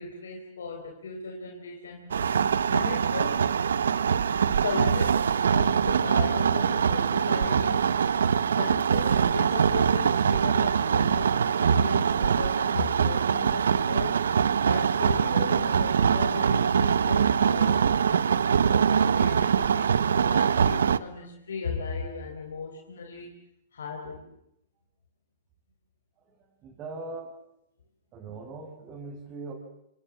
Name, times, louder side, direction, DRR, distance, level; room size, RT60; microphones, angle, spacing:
voice 1, 0.0-2.2 2.6-3.4 4.5-7.9 8.5-14.2 14.6-19.9 20.1-23.4 23.7-24.3, left 4 dB, 90° left, 2 dB, 4.2 m, -37 dB
sound 1, 2.1-21.0, right 7 dB, 85° right, 1.0 m, -23 dB
voice 2, 26.3-27.3 28.1-29.5, right 3 dB, 30° right, -2 dB, 5.7 m, -40 dB
26.5 x 26.5 x 7.4 m, 0.77 s
hypercardioid pair, 135°, 0 cm